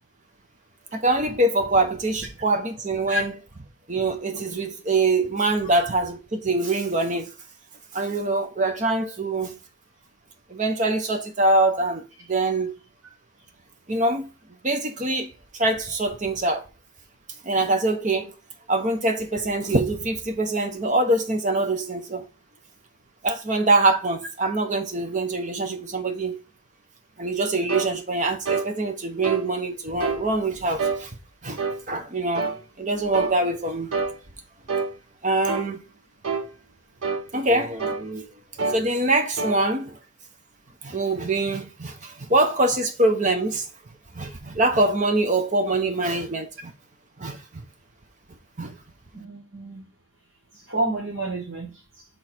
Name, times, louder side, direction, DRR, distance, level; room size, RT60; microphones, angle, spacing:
voice 1, 0.9-3.3 3.9-7.3 7.9-9.6 10.5-12.7 13.9-14.3 14.6-16.7 17.4-18.3 18.7-22.3 23.2-26.4 27.2-31.1 31.4-31.6 31.9-32.5 32.8-33.9 35.2-35.8 37.3-38.3 38.7-40.0 40.8-43.7 44.1-46.7 47.2-47.4 48.6-48.8, right 2 dB, 35° right, 0.9 m, -24 dB
sound 1, 27.7-27.9 28.5-28.7 29.2-29.5 30.0-30.2 30.8-31.0 31.6-31.8 32.4-32.6 33.1-33.4 33.9-34.2 34.7-34.9 35.5-35.7 36.2-36.5 37.0-37.2 37.8-38.0 38.6-38.8 39.4-39.6, right 4 dB, 80° right, 0.9 m, -26 dB
voice 2, 49.1-49.9 50.5-52.1, right 1 dB, 60° right, 1.6 m, -30 dB
6.1 x 3.9 x 4.4 m
head